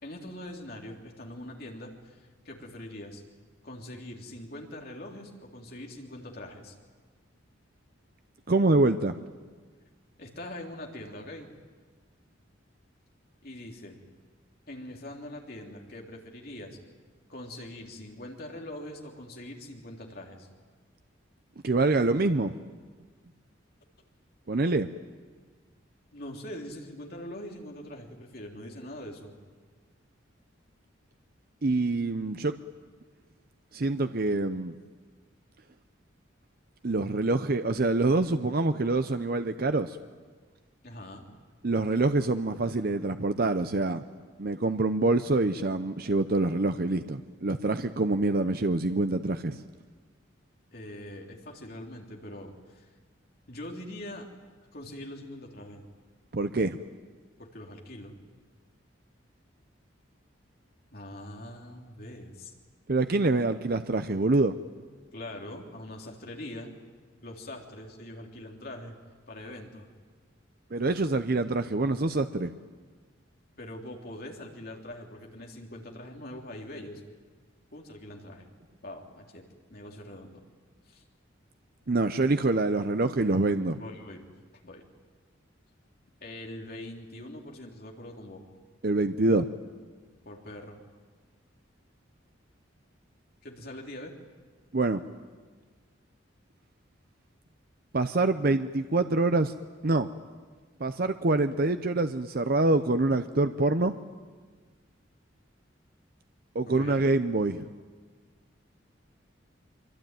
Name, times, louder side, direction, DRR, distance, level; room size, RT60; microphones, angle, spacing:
voice 1, 0.0-2.2 2.5-3.2 3.6-6.7 10.2-11.5 13.4-14.0 14.7-16.8 17.3-20.5 26.1-29.4 40.8-41.2 50.7-52.9 53.5-54.3 54.7-55.8 57.4-58.1 60.9-62.5 65.1-66.7 67.2-68.9 69.3-69.9 73.6-77.0 77.7-78.5 78.8-79.4 79.7-80.4 80.9-81.0 83.8-84.3 84.6-84.8 86.2-88.4 90.2-90.8 93.4-94.1 106.7-107.0, left 1 dB, 50° left, 1 dB, 3.5 m, -42 dB
voice 2, 8.5-9.1 21.6-22.5 24.5-24.9 31.6-32.6 33.7-34.7 36.8-40.0 41.6-44.0 44.4-49.6 56.3-56.8 62.9-64.5 70.7-72.5 81.9-83.8 88.8-89.5 94.7-95.0 97.9-99.5 99.8-100.1 100.8-103.9 106.5-107.7, right 2 dB, 50° right, 10 dB, 0.7 m, -25 dB
24.5 x 24.0 x 9.2 m, 1.5 s
head